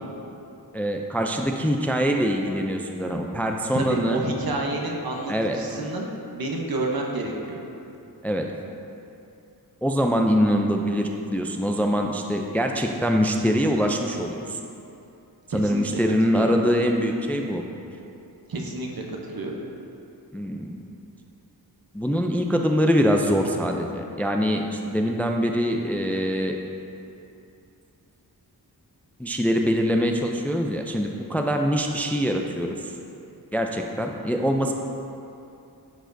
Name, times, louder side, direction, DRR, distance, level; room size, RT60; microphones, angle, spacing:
voice 1, 0.7-4.3 5.3-5.6 8.2-8.5 9.8-14.6 15.5-17.6 20.3-20.8 21.9-26.6 29.2-32.8 33.5-34.7, equal, 5° left, 3 dB, 0.4 m, -24 dB
voice 2, 3.7-7.6 15.5-15.8 16.3-16.5 18.5-19.6, right 2 dB, 65° right, 0 dB, 0.9 m, -29 dB
10.0 x 5.0 x 2.6 m, 2.7 s
wide cardioid pair, 65°, 38 cm